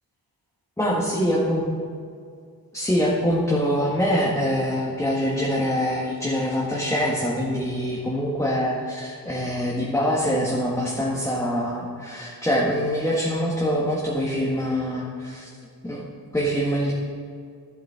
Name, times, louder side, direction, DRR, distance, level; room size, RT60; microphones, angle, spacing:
voice 1, 0.8-1.6 2.7-15.5 15.8-16.0 16.3-16.9, equal, 10° left, -5 dB, 1.7 m, -24 dB
12.0 x 8.2 x 5.8 m, 2.2 s
wide cardioid pair, 120°, 37 cm